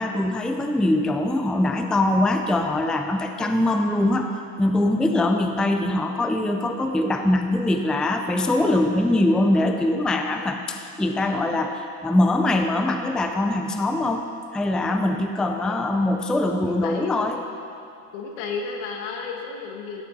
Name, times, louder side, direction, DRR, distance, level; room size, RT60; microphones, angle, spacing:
voice 1, 0.0-4.3 4.6-17.4, left 1 dB, ahead, 5 dB, 0.4 m, -22 dB
voice 2, 15.4-15.8 16.5-17.1 18.1-20.0, left 5 dB, 80° left, 1 dB, 1.8 m, -33 dB
16.0 x 8.0 x 4.0 m, 2.6 s
cardioid pair, 135°, 39 cm